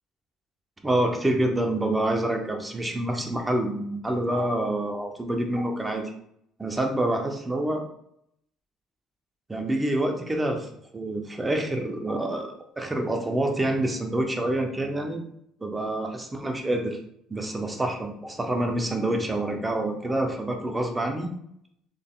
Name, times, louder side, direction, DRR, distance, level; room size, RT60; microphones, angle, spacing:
voice 1, 0.8-6.1 6.6-7.8 9.5-10.7 10.9-15.2 15.6-17.0 17.3-21.3, right 1 dB, 15° right, 3 dB, 0.6 m, -27 dB
3.8 x 3.4 x 2.3 m, 0.71 s
cardioid pair, 130°, 0 cm